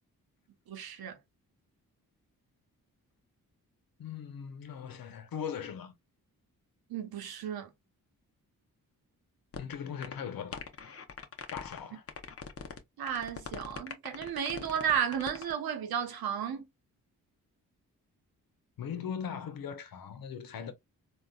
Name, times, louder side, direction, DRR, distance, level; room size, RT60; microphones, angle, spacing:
voice 1, 0.7-1.2 6.9-7.7 13.0-16.7, right 8 dB, 80° right, 0.9 m, -33 dB
voice 2, 4.0-5.9 9.6-10.6 11.5-12.0 18.8-20.7, left 7 dB, 70° left, 0.9 m, -39 dB
sound 1, 9.5-9.8 10.0-10.1 10.5-11.8 12.1-12.8 13.1-15.5, left 6 dB, 40° left, 0.8 m, -42 dB
3.6 x 2.4 x 2.3 m
cardioid pair, 55°, 36 cm